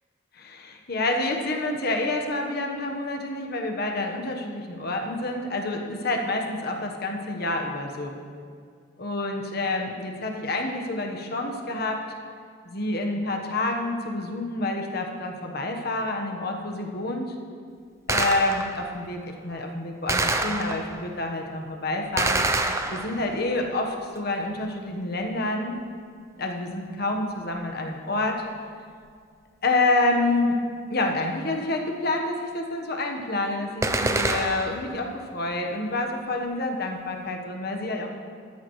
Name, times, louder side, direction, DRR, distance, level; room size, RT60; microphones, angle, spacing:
voice 1, 0.3-8.1 9.0-12.0 12.6-17.3 18.1-22.4 22.9-25.8 26.4-28.4 29.6-30.6 30.9-38.1, left 2 dB, 50° left, 2 dB, 1.2 m, -28 dB
Gunshot gunfire, 18.1-18.9 20.1-21.1 22.2-23.4 33.8-34.9, right 2 dB, 15° right, 0.5 m, -26 dB
14.0 x 13.0 x 3.2 m, 2.1 s
head